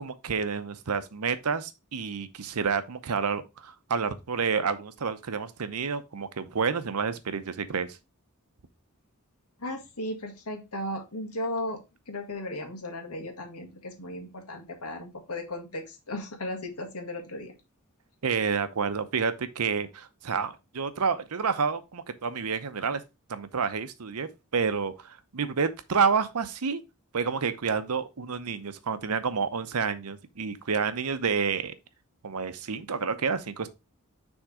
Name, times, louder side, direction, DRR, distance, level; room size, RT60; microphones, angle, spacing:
voice 1, 0.0-8.0 18.2-23.0 23.3-26.8 27.1-31.7 32.2-33.7, right 5 dB, 85° right, 0.7 m, -29 dB
voice 2, 9.6-11.8 12.1-17.6, left 1 dB, 80° left, 1.8 m, -36 dB
6.3 x 3.6 x 4.8 m
head